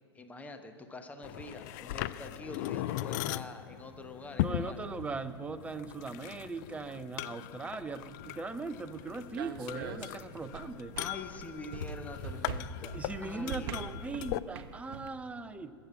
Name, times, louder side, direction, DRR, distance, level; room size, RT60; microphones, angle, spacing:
voice 1, 0.1-4.9 11.0-13.8, left 3 dB, 10° left, 7 dB, 1.1 m, -45 dB
sound 1, 1.2-14.4, left 14 dB, 45° left, 0.4 m, -39 dB
voice 2, 4.4-10.9 12.9-15.7, right 3 dB, 10° right, 10 dB, 0.6 m, -39 dB
sound 2, 7.9-15.1, right 7 dB, 50° right, 0.9 m, -44 dB
21.0 x 7.6 x 7.2 m, 2.5 s
figure-of-eight pair, 105°, 14 cm